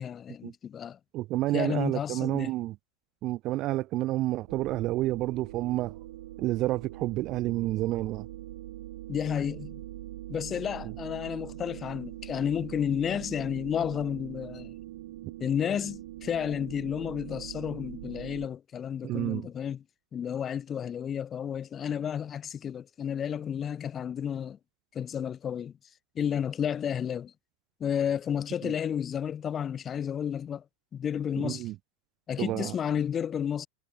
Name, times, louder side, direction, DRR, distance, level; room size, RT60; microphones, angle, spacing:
voice 1, 0.0-1.0 1.5-2.5 9.1-9.8 10.3-14.7 15.4-19.8 20.1-24.6 24.9-25.7 26.1-27.3 27.8-30.6 30.9-31.7 32.3-33.7, left 8 dB, 25° left, 1.1 m, -31 dB
voice 2, 1.1-2.8 3.2-6.0 6.4-8.3 10.8-10.9 19.0-19.5 28.6-28.7 31.4-31.8 32.4-32.8, right 17 dB, 35° right, 0.5 m, -29 dB
sound 1, 4.5-18.5, right 15 dB, 55° right, 1.3 m, -43 dB
figure-of-eight pair, 90°, 0 cm